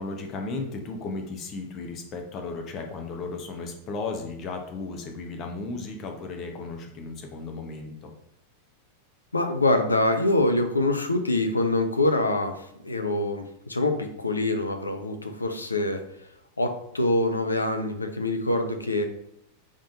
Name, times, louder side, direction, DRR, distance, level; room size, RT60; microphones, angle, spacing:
voice 1, 0.0-8.1, left 3 dB, 35° left, 3 dB, 0.8 m, -35 dB
voice 2, 9.3-12.5 12.8-16.0 16.6-19.0, left 2 dB, 80° left, 6 dB, 0.5 m, -25 dB
5.1 x 3.5 x 2.7 m, 0.76 s
figure-of-eight pair, 90°, 0 cm